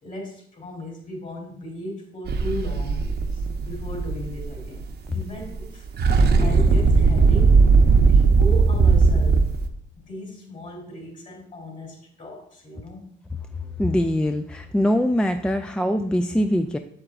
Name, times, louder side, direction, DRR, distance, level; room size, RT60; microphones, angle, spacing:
voice 1, 0.0-5.9 6.3-7.6 8.0-9.4 9.9-13.0, equal, 40° left, -1 dB, 3.2 m, -36 dB
sound 1, 2.3-5.1 5.4-5.6 5.8-9.7, right 4 dB, 55° right, 0.9 m, -18 dB
voice 2, 13.8-16.8, equal, 5° left, 6 dB, 0.4 m, -22 dB
7.8 x 7.4 x 2.5 m, 0.63 s
cardioid pair, 90°, 20 cm